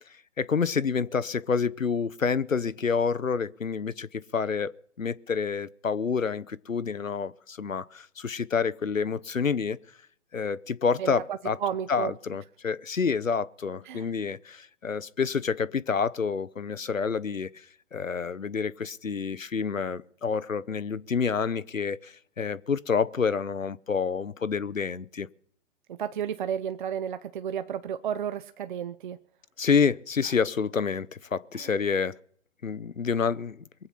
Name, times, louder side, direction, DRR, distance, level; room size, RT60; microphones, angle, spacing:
voice 1, 0.4-4.7 5.0-9.8 10.3-11.6 11.9-17.5 17.9-25.3 29.6-32.2 32.6-33.6, left 5 dB, 85° left, 0.7 m, -28 dB
voice 2, 11.0-12.2 13.8-14.1 25.9-29.2 30.2-30.3 31.5-31.7, right 8 dB, 40° right, 0.6 m, -32 dB
23.0 x 8.1 x 5.8 m
figure-of-eight pair, 120°, 38 cm